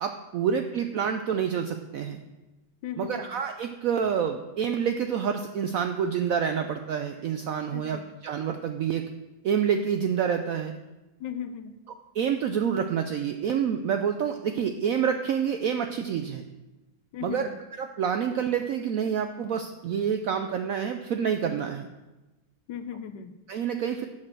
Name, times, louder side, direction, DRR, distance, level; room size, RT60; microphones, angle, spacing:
voice 1, 0.0-2.2 3.0-9.1 9.4-10.7 11.9-16.4 17.2-21.9 23.5-24.1, right 7 dB, 80° right, 6 dB, 0.7 m, -28 dB
voice 2, 2.8-3.3 7.7-8.0 11.2-11.7 17.1-17.6 22.7-23.3, left 8 dB, 75° left, 10 dB, 1.2 m, -37 dB
7.5 x 6.6 x 6.0 m, 1.1 s
omnidirectional pair, 2.0 m